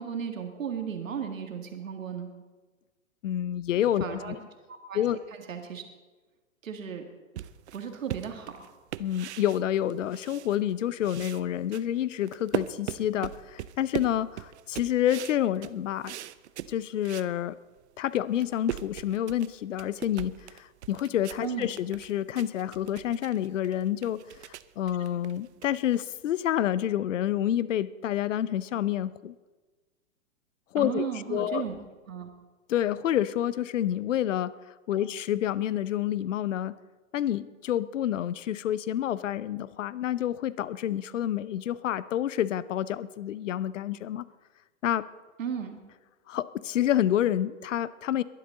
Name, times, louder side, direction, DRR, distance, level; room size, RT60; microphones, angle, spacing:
voice 1, 0.0-2.3 4.0-4.4 4.7-5.0 5.5-5.8 6.6-7.0 7.7-8.6 21.4-21.7 30.8-31.7 32.1-32.3 34.9-35.0 45.4-45.8, right 7 dB, 75° right, 5 dB, 2.0 m, -35 dB
voice 2, 3.2-4.4 4.9-5.2 9.0-16.2 16.7-17.6 18.0-29.3 30.7-31.6 32.7-34.5 34.9-36.7 37.1-44.2 44.8-45.1 46.3-48.2, left 11 dB, 65° left, 18 dB, 0.7 m, -28 dB
sound 1, 7.4-10.8 11.0-17.3 17.8-17.9 18.2-26.3, right 12 dB, 55° right, 0.7 m, -39 dB
22.0 x 11.5 x 3.9 m, 1.3 s
figure-of-eight pair, 110°, 40 cm